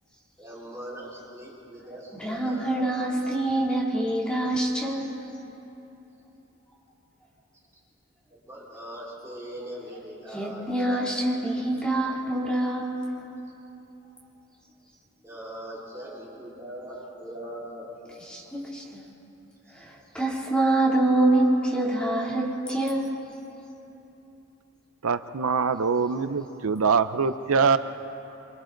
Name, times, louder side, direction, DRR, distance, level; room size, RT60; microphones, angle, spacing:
voice 1, 0.4-2.6 8.3-11.1 15.2-17.9 18.3-18.5, right 1 dB, 15° right, -8 dB, 4.7 m, -41 dB
voice 2, 2.2-5.1 10.3-12.9 18.2-19.0 19.7-23.1, right 1 dB, 5° left, -5 dB, 2.8 m, -25 dB
voice 3, 25.0-27.8, right 5 dB, 90° right, 12 dB, 0.6 m, -23 dB
27.0 x 25.5 x 3.9 m, 3.0 s
head